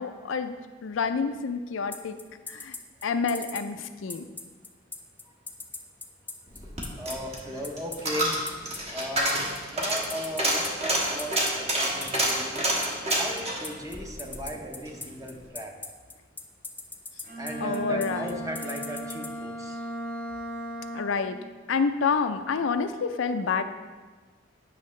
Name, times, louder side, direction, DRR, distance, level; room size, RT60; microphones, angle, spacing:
voice 1, 0.0-2.2 2.5-2.8 3.0-4.2 17.6-18.4 20.9-21.4 21.7-23.6, left 5 dB, 85° left, 9 dB, 0.4 m, -28 dB
sound 1, 1.9-19.3, left 3 dB, 10° left, 0.4 m, -38 dB
Coin (dropping), 6.5-15.0 15.3-15.4, right 1 dB, 35° right, 1.3 m, -28 dB
voice 2, 7.0-8.3 8.9-9.4 9.7-12.7 13.2-15.7 17.3-19.8, equal, 20° right, 2 dB, 0.8 m, -37 dB
Bowed string instrument, 17.2-21.4, right 1 dB, 55° right, 2.3 m, -36 dB
9.3 x 5.6 x 3.2 m, 1.4 s
head